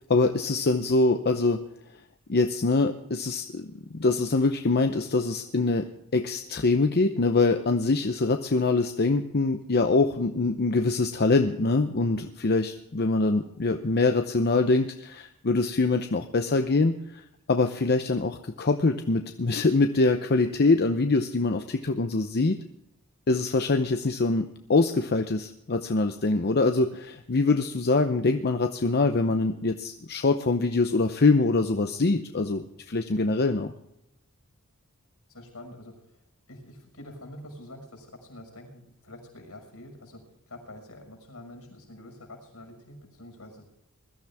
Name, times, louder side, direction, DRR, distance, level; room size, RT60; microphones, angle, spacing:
voice 1, 0.1-1.6 2.3-3.7 3.9-17.2 17.5-22.6 23.3-33.7, left 3 dB, 50° left, 6 dB, 0.7 m, -24 dB
voice 2, 35.3-36.2 36.5-43.6, left 1 dB, 75° left, 2 dB, 5.9 m, -46 dB
21.0 x 13.0 x 3.5 m, 0.81 s
head